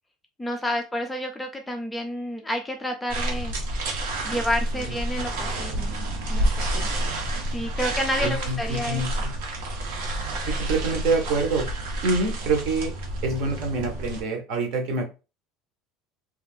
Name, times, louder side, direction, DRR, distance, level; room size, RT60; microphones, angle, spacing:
voice 1, 0.4-3.5 4.2-6.0 6.3-6.9 7.5-9.0, left 1 dB, 5° left, 3 dB, 0.3 m, -30 dB
sound 1, 3.1-14.2, right 1 dB, 85° right, 1.0 m, -29 dB
voice 2, 8.2-9.3 10.5-11.7 12.0-12.9 13.2-15.1, right 3 dB, 50° right, 4 dB, 0.8 m, -26 dB
2.4 x 2.3 x 3.4 m, 0.30 s
cardioid pair, 175°, 0 cm